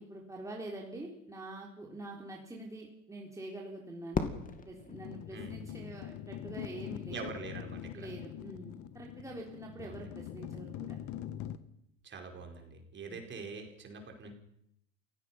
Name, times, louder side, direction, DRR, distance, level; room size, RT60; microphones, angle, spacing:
voice 1, 0.0-4.3 4.7-7.3 7.9-11.0 13.1-13.3, right 2 dB, 10° right, -1 dB, 3.7 m, -45 dB
Fireworks, 4.1-6.3, left 5 dB, 20° left, 2.6 m, -38 dB
sound 1, 4.9-11.6, left 11 dB, 45° left, 1.6 m, -43 dB
voice 2, 7.1-8.1 9.8-10.1 12.0-14.3, right 4 dB, 30° right, 4 dB, 4.8 m, -44 dB
28.5 x 16.5 x 5.9 m, 0.75 s
hypercardioid pair, 105°, 40 cm